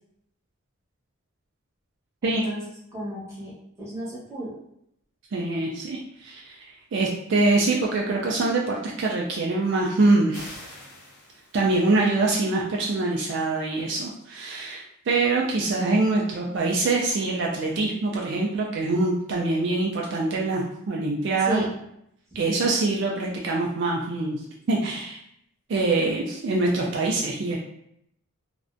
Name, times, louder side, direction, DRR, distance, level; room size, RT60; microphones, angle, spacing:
voice 1, 2.2-2.6 2.9-3.5 3.8-4.6 21.5-21.7, right 1 dB, 15° right, -8 dB, 0.9 m, -33 dB
voice 2, 5.3-10.6 11.5-21.6 22.4-24.4 24.7-25.2 25.7-27.6, right 2 dB, 55° right, -2 dB, 0.3 m, -24 dB
sound 1, 10.3-11.9, left 1 dB, 90° left, 0.6 m, -44 dB
2.4 x 2.1 x 2.5 m, 0.75 s
head